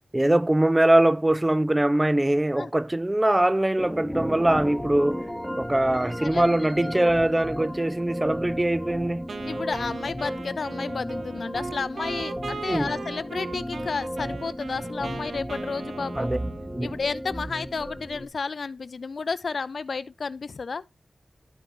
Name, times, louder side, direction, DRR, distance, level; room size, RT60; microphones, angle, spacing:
voice 1, 0.1-5.2 5.6-9.3 12.7-12.9 16.2-16.4 16.7-17.0, right 1 dB, 20° right, 0.3 m, -22 dB
sound 1, 3.8-18.3, equal, 5° right, 1.6 m, -34 dB
voice 2, 6.2-6.9 9.5-16.3 16.8-20.8, left 4 dB, 75° left, 0.4 m, -32 dB
Wind instrument woodwind instrument, 9.3-17.2, right 5 dB, 80° right, 0.5 m, -39 dB
12.0 x 5.2 x 3.0 m
cardioid pair, 50°, 0 cm